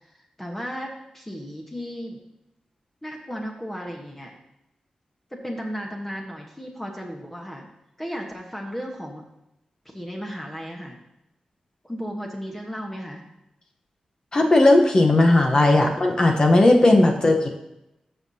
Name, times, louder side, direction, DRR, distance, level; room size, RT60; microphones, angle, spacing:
voice 1, 0.0-2.2 3.0-4.3 5.3-7.7 8.0-9.2 9.8-11.0 11.8-13.2, equal, 10° left, 0 dB, 1.1 m, -35 dB
voice 2, 14.3-17.5, left 2 dB, 35° left, 2 dB, 0.9 m, -16 dB
13.5 x 5.6 x 2.8 m, 0.88 s
wide cardioid pair, 120°, 2 cm